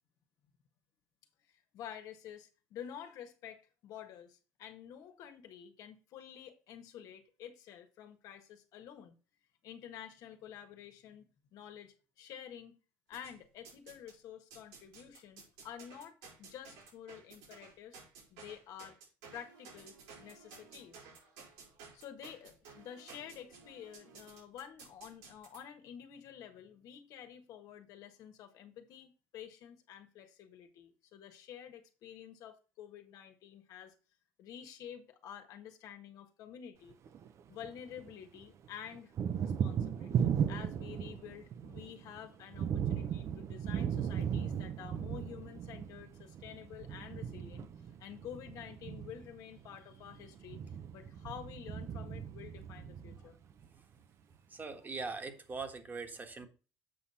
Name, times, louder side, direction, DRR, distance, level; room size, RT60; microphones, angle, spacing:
voice 1, 1.7-9.2 9.6-12.8 13.1-18.0 18.3-19.0 19.3-21.1 21.9-33.9 34.4-37.0 37.5-39.1 39.4-47.7 48.0-50.6 50.9-53.4, left 9 dB, 65° left, 1.5 m, -50 dB
sound 1, 13.1-14.2 14.5-25.6, right 5 dB, 90° right, 5.0 m, -55 dB
Thunder, 36.9-38.1 38.4-53.7, right 8 dB, 50° right, 0.8 m, -37 dB
voice 2, 54.5-56.5, right 4 dB, 30° right, 1.5 m, -41 dB
7.7 x 5.4 x 4.3 m
cardioid pair, 100°, 6 cm